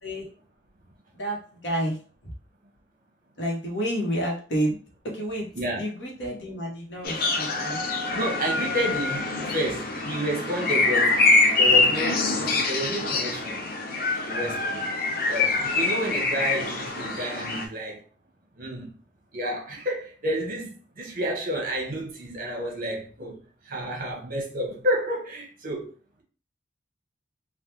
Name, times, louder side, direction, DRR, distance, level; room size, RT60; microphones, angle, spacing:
voice 1, 1.1-2.0 3.4-4.8 5.0-5.5 5.8-7.8, equal, 75° left, 1.1 m, -29 dB
sound 1, 7.1-17.7, left 3 dB, 55° left, 0.5 m, -24 dB
voice 2, 8.1-9.2 9.5-11.1 11.6-13.6 14.2-14.8 15.3-18.0 18.6-18.9 19.3-20.7 21.0-23.4 23.7-25.9, right 1 dB, 50° right, 1.0 m, -30 dB
3.3 x 2.3 x 2.9 m
head